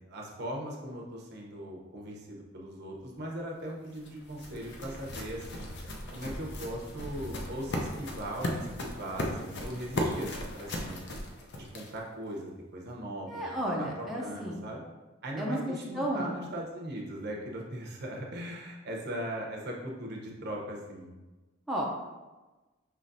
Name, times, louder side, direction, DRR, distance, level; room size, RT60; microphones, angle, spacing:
voice 1, 0.1-5.7 6.1-11.0 11.5-13.4 13.8-14.8 15.2-21.1, right 1 dB, 55° right, -1 dB, 0.8 m, -39 dB
sound 1, 3.6-12.1, left 1 dB, 60° left, 0.6 m, -37 dB
voice 2, 13.3-14.6 15.4-16.3 21.7-21.8, right 1 dB, ahead, -4 dB, 0.5 m, -33 dB
5.6 x 3.0 x 2.6 m, 1.2 s
head